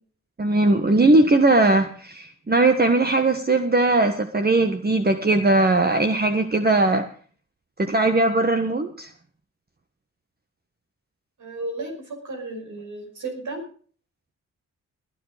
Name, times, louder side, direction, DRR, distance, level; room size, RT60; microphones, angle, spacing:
voice 1, 0.4-7.1 7.8-9.1, right 2 dB, 30° right, 6 dB, 1.5 m, -19 dB
voice 2, 11.4-13.7, right 2 dB, 70° right, 3 dB, 5.6 m, -34 dB
20.0 x 9.4 x 5.1 m, 0.43 s
supercardioid pair, 50°, 32 cm